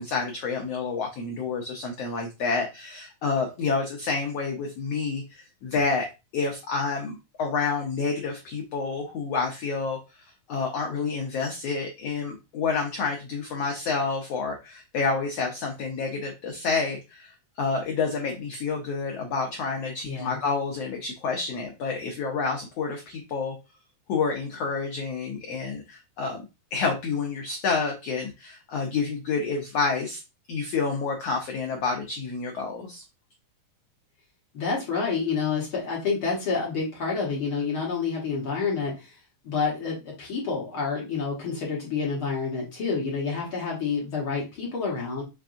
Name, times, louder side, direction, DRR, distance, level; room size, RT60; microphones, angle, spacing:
voice 1, 0.0-6.1 6.3-10.0 10.5-23.5 24.1-26.4 26.7-30.2 30.5-33.0, left 4 dB, 90° left, 2 dB, 1.4 m, -29 dB
voice 2, 20.0-20.4 34.5-39.2 39.4-45.2, left 5 dB, 55° left, -3 dB, 1.6 m, -28 dB
5.9 x 3.5 x 2.5 m, 0.27 s
omnidirectional pair, 3.8 m